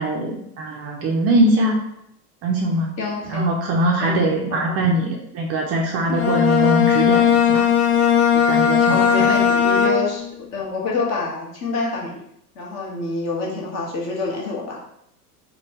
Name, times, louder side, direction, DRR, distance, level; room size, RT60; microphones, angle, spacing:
voice 1, 0.0-1.8 2.4-2.9 3.2-7.7 8.3-9.3, right 1 dB, 35° right, 0 dB, 0.5 m, -22 dB
voice 2, 3.0-3.5 4.0-4.1 4.5-4.7 8.8-10.3 10.5-12.2 12.5-14.8, left 3 dB, 35° left, -3 dB, 1.2 m, -27 dB
Bowed string instrument, 6.1-10.4, left 8 dB, 65° left, 0.8 m, -17 dB
3.2 x 2.2 x 4.3 m, 0.75 s
hypercardioid pair, 110°, 47 cm